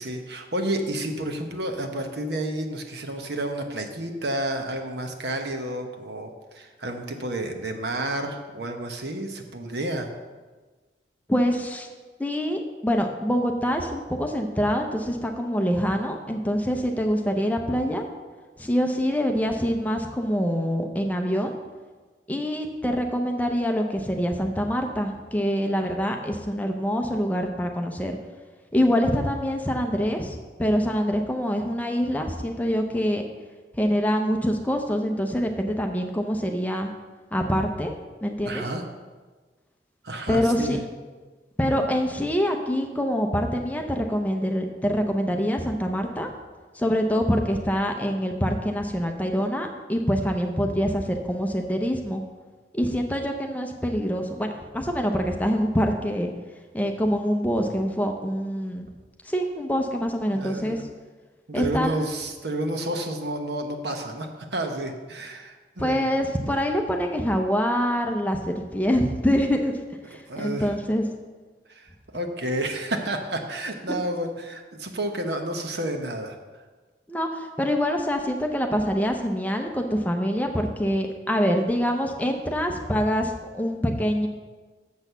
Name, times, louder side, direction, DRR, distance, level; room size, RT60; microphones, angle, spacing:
voice 1, 0.0-10.1 38.4-38.8 40.0-40.8 60.3-60.9 61.5-66.1 70.3-70.7 71.7-76.6, right 1 dB, 70° right, 5 dB, 1.0 m, -30 dB
voice 2, 11.3-11.9 12.2-18.0 18.6-21.5 22.3-28.2 28.7-33.2 33.7-36.9 37.3-37.9 38.2-38.6 40.3-40.8 41.6-46.3 46.7-52.2 52.7-56.3 56.7-58.9 59.2-60.8 61.5-62.1 65.8-69.7 70.1-71.0 73.9-74.0 77.1-84.3, equal, 10° left, 3 dB, 0.7 m, -25 dB
7.3 x 6.3 x 6.8 m, 1.3 s
head